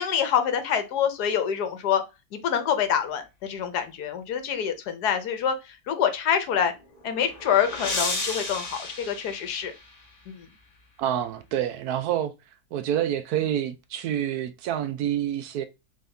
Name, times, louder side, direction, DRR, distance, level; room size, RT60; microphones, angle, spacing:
voice 1, 0.0-2.0 2.3-6.7 7.0-9.7 10.3-10.5, left 8 dB, 70° left, 1.3 m, -26 dB
sound 1, 6.8-10.2, left 3 dB, 30° left, 0.9 m, -33 dB
voice 2, 11.0-12.3 12.7-15.6, right 11 dB, 70° right, 1.0 m, -27 dB
3.9 x 3.5 x 3.3 m
omnidirectional pair, 1.8 m